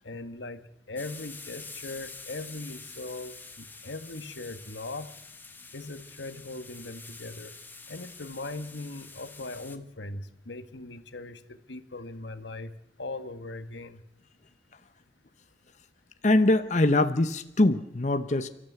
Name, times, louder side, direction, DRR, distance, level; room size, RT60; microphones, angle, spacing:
voice 1, 0.0-0.6 0.9-5.1 5.7-7.5 7.9-12.7 13.0-14.0, left 2 dB, 90° left, 10 dB, 1.5 m, -39 dB
sound 1, 1.0-9.8, left 4 dB, 10° left, 1.4 m, -46 dB
voice 2, 16.2-18.5, left 2 dB, 40° left, 9 dB, 0.8 m, -23 dB
30.0 x 14.0 x 8.3 m, 0.83 s
head